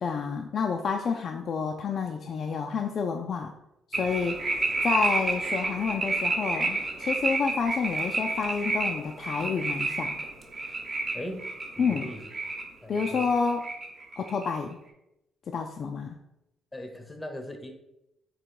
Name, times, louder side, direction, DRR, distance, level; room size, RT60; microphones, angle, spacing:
voice 1, 0.0-3.5 3.9-4.4 4.8-10.2 11.8-12.1 12.9-13.7 14.2-14.8 15.5-16.2, left 5 dB, 55° left, 3 dB, 0.4 m, -29 dB
sound 1, 3.9-12.6 12.9-14.5, right 3 dB, 40° right, 1.0 m, -30 dB
voice 2, 11.1-11.5 11.8-12.2 12.8-13.3 16.7-17.7, left 1 dB, 10° left, 5 dB, 0.7 m, -39 dB
3.8 x 2.9 x 4.4 m, 0.87 s
cardioid pair, 90°, 0 cm